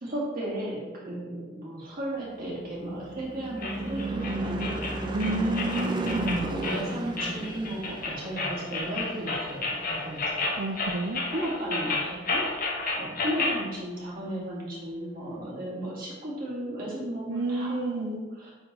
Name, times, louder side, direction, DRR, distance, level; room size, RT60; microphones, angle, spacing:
voice 1, 0.0-5.4 5.9-10.4 11.3-12.5 13.0-18.5, right 1 dB, 50° right, -6 dB, 2.0 m, -35 dB
Car passing by / Truck / Engine, 2.5-11.2, right 2 dB, 25° right, 0.5 m, -35 dB
sound 1, 3.6-13.6, left 3 dB, 50° left, 1.0 m, -31 dB
voice 2, 5.1-6.6 10.6-11.2 17.3-18.2, right 2 dB, 80° right, 1 dB, 0.5 m, -30 dB
9.4 x 3.7 x 3.1 m, 1.2 s
head